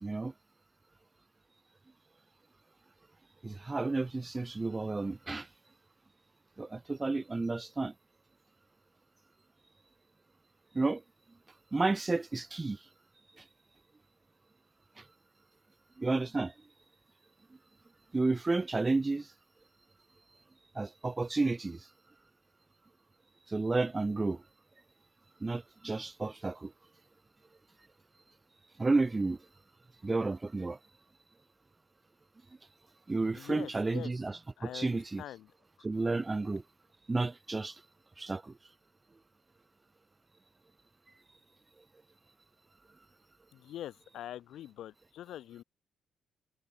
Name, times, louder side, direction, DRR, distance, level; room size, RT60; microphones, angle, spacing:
voice 1, 0.0-0.3 3.4-5.5 6.6-7.9 10.7-11.0 11.7-12.8 16.0-16.5 18.1-19.3 20.8-21.8 23.5-24.4 25.4-26.7 28.8-29.4 30.0-30.8 33.1-35.2 35.8-36.6 37.1-37.7 38.2-38.5, right 3 dB, 20° right, 0.3 m, -31 dB
voice 2, 33.3-34.1 34.6-35.5 43.5-45.6, left 12 dB, 75° left, 0.5 m, -44 dB
cardioid pair, 90°, 0 cm